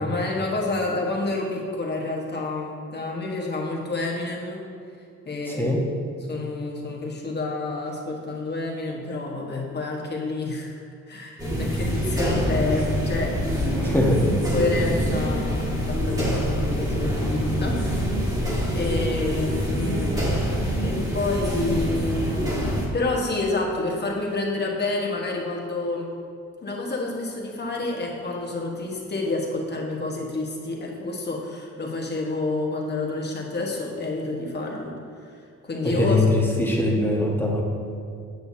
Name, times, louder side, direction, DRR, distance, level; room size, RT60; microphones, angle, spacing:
voice 1, 0.0-4.6 5.2-5.8 6.3-13.3 13.7-14.1 14.5-17.8 18.7-20.4 20.8-26.1 26.6-34.9 35.6-36.2, left 2 dB, 35° left, -1 dB, 1.3 m, -29 dB
voice 2, 5.5-5.8 13.8-14.4 35.8-37.6, left 2 dB, 5° left, -2 dB, 1.2 m, -22 dB
sound 1, 11.4-22.9, equal, 10° right, 1.7 m, -25 dB
7.9 x 6.7 x 2.8 m, 2.4 s
cardioid pair, 90°, 30 cm